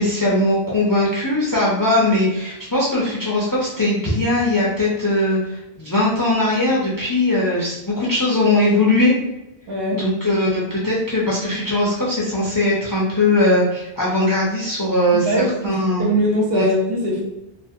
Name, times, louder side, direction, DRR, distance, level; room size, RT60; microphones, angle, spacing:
voice 1, 0.0-9.1 9.9-15.3 15.6-16.1 16.5-16.7, left 1 dB, 30° left, -5 dB, 0.4 m, -19 dB
voice 2, 9.7-10.1 15.1-17.2, right 1 dB, 70° right, -3 dB, 1.0 m, -21 dB
2.5 x 2.0 x 2.6 m, 0.89 s
omnidirectional pair, 1.0 m